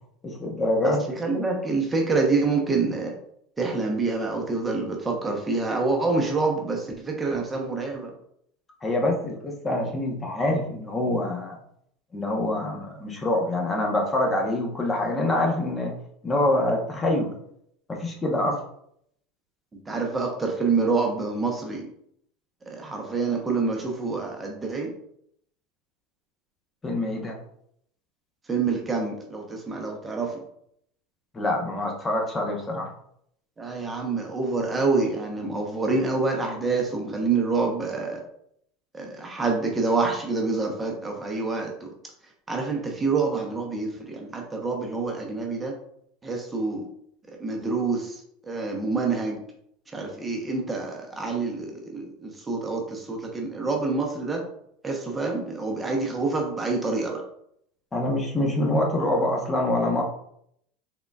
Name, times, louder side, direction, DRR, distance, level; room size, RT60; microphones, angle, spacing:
voice 1, 0.2-1.1 8.8-11.6 12.1-16.0 16.2-17.4 17.9-18.6 26.8-27.4 31.3-32.9 57.9-60.0, left 1 dB, 20° left, 0 dB, 0.9 m, -25 dB
voice 2, 0.8-3.1 3.6-8.1 19.9-21.9 22.7-24.9 28.5-30.4 33.6-38.2 38.9-41.9 42.5-45.8 46.2-46.9 47.4-49.4 49.9-54.4 54.8-57.2, right 3 dB, 20° right, 1 dB, 0.8 m, -27 dB
3.6 x 3.6 x 2.3 m, 0.71 s
hypercardioid pair, 95°, 0 cm